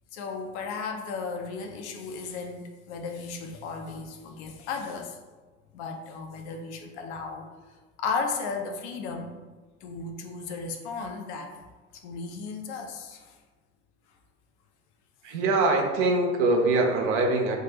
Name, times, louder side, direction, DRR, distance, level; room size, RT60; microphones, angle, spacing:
voice 1, 0.1-5.2 5.7-7.5 8.0-9.3 9.8-11.5 12.0-13.4, left 4 dB, 60° left, 4 dB, 0.5 m, -35 dB
voice 2, 15.2-17.6, right 2 dB, 65° right, 2 dB, 0.6 m, -23 dB
3.7 x 2.4 x 2.8 m, 1.3 s
figure-of-eight pair, 55°, 38 cm